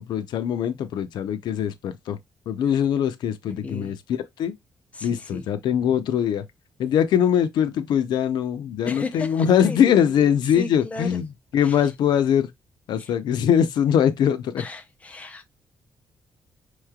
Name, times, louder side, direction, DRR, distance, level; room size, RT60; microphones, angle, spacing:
voice 1, 0.0-2.2 2.5-4.5 5.0-6.5 6.8-12.5 12.9-14.6, left 9 dB, 90° left, 0.6 m, -22 dB
voice 2, 3.5-4.0 4.9-5.5 8.8-10.3 10.5-11.2 11.6-11.8 13.0-13.1 14.6-15.5, left 3 dB, 20° left, 0.7 m, -35 dB
5.6 x 3.1 x 2.3 m
cardioid pair, 140°, 7 cm